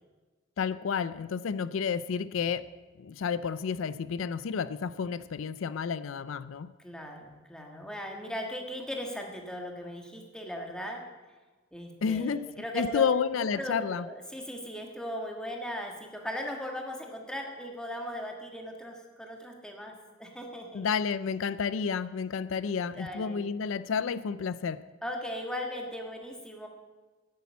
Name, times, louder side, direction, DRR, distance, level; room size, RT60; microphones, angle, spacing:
voice 1, 0.6-2.7 3.0-6.7 12.0-12.5 12.7-14.1 20.7-24.8, left 6 dB, 80° left, 16 dB, 0.4 m, -30 dB
voice 2, 6.8-11.0 11.7-13.1 13.4-20.8 23.0-23.4 25.0-26.7, left 1 dB, 5° left, 1 dB, 1.5 m, -38 dB
10.0 x 9.5 x 8.4 m, 1.3 s
head